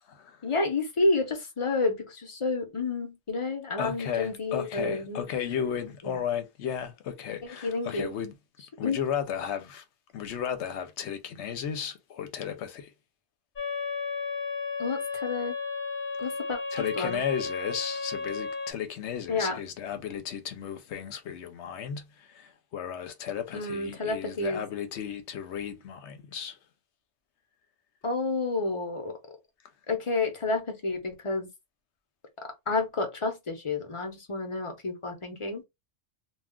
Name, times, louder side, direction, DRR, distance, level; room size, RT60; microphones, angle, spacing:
voice 1, 0.4-5.3 6.0-6.2 7.5-8.1 8.8-9.0 14.8-15.6 16.2-17.2 19.3-19.6 23.5-24.6 28.0-29.2 29.9-31.5 32.7-35.6, left 3 dB, 30° left, 0.7 m, -30 dB
voice 2, 3.8-8.3 8.8-9.8 10.1-12.9 16.7-26.6, left 8 dB, 75° left, 0.9 m, -34 dB
sound 1, 13.6-18.7, left 4 dB, 50° left, 0.9 m, -33 dB
2.3 x 2.3 x 3.5 m
omnidirectional pair, 1.2 m